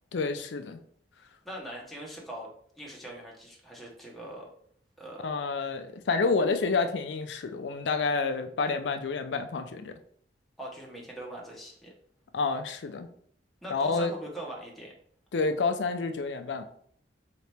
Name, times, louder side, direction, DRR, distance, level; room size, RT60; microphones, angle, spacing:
voice 1, 0.1-0.8 5.2-9.9 12.3-13.1 13.7-14.1 15.3-16.6, left 4 dB, 85° left, 8 dB, 0.5 m, -29 dB
voice 2, 1.4-4.5 5.0-5.3 10.6-11.9 13.6-14.9, right 1 dB, ahead, -3 dB, 0.9 m, -41 dB
4.1 x 2.8 x 3.3 m, 0.62 s
head